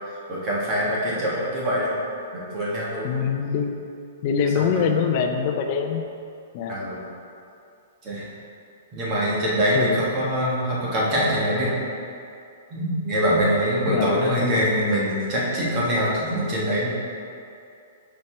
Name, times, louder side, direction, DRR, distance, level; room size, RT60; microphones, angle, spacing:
voice 1, 0.3-2.0 2.3-3.2 4.7-4.9 6.7-7.0 8.0-8.3 8.9-11.7 12.7-16.9, equal, 20° right, -6 dB, 1.4 m, -24 dB
voice 2, 3.0-3.7 4.2-6.0 6.5-6.8 9.7-10.0 13.9-14.1 14.4-14.6, left 6 dB, 30° left, 4 dB, 0.5 m, -24 dB
12.5 x 4.3 x 3.3 m, 2.5 s
hypercardioid pair, 180°, 0 cm